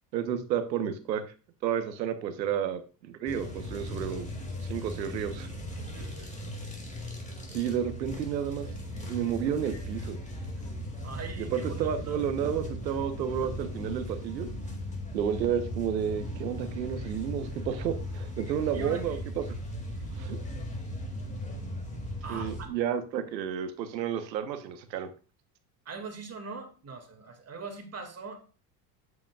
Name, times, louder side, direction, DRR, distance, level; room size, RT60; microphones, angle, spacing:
voice 1, 0.1-1.2 1.6-2.8 3.2-4.3 4.7-5.5 7.5-8.7 9.1-10.2 11.4-14.5 15.1-19.4 20.2-20.4 22.3-25.1, right 8 dB, 90° right, 10 dB, 1.1 m, -31 dB
sound 1, 3.3-22.7, equal, 15° left, 2.0 m, -38 dB
voice 2, 5.9-6.3 11.0-12.2 18.7-19.2 19.9-20.7 22.2-22.7 25.9-28.5, right 4 dB, 30° right, 5 dB, 2.1 m, -42 dB
8.3 x 7.5 x 2.3 m, 0.35 s
hypercardioid pair, 80°, 50 cm